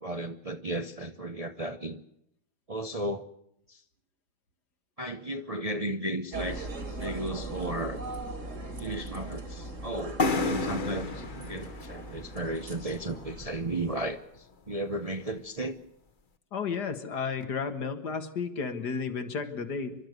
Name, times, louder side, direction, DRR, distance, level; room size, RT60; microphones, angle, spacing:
voice 1, 0.0-2.0 2.7-3.3 3.7-3.8 5.0-8.0 8.8-15.8, right 1 dB, 30° right, 7 dB, 0.7 m, -34 dB
sound 1, 6.3-14.2, right 2 dB, 45° right, 2.9 m, -40 dB
sound 2, 10.2-13.8, left 3 dB, 35° left, 1.2 m, -32 dB
voice 2, 16.5-20.0, left 5 dB, 75° left, 8 dB, 2.3 m, -32 dB
29.0 x 12.5 x 8.1 m, 0.77 s
omnidirectional pair, 1.8 m